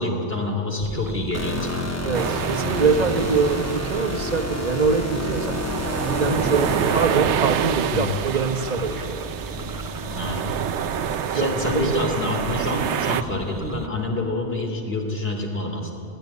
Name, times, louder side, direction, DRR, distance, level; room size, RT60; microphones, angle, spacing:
voice 1, 0.0-2.0 7.9-8.1 10.1-10.5 11.0-15.9, left 1 dB, 60° left, 1 dB, 3.4 m, -27 dB
sound 1, 0.8-13.9, right 2 dB, 20° right, 0.8 m, -35 dB
sound 2, 1.3-7.8, left 1 dB, 15° left, 0.9 m, -30 dB
voice 2, 2.0-5.6 6.0-9.3 11.3-12.1, right 4 dB, 40° right, 7 dB, 1.3 m, -24 dB
sound 3, 2.1-13.2, right 9 dB, 85° right, 1.0 m, -28 dB
17.5 x 15.5 x 9.7 m, 2.6 s
omnidirectional pair, 1.1 m